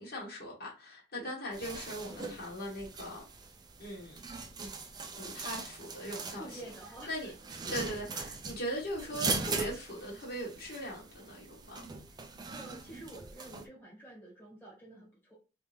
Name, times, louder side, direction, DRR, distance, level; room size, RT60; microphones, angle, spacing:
voice 1, 0.0-3.3 3.8-4.2 4.6-4.7 5.2-6.6 7.1-7.3 7.7-11.8, equal, 50° left, 1.2 m, -40 dB
sound 1, 1.5-13.7, right 4 dB, 20° right, 0.4 m, -41 dB
voice 2, 6.4-7.1 7.6-8.0 12.5-15.4, right 1 dB, 10° left, 1.5 m, -49 dB
3.4 x 2.6 x 3.2 m
head